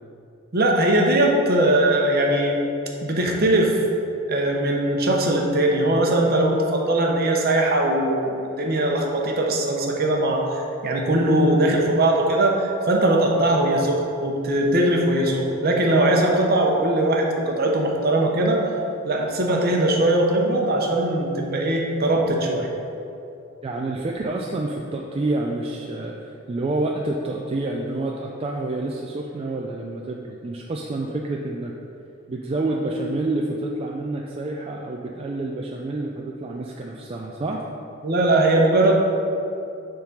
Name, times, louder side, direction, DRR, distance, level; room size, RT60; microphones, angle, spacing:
voice 1, 0.5-2.6 3.0-3.8 4.3-18.6 19.0-22.7 38.0-38.9, right 1 dB, 50° right, 0 dB, 0.9 m, -20 dB
voice 2, 23.6-31.7 32.3-37.6, right 2 dB, 30° right, -1 dB, 0.4 m, -28 dB
7.0 x 3.8 x 5.4 m, 2.7 s
head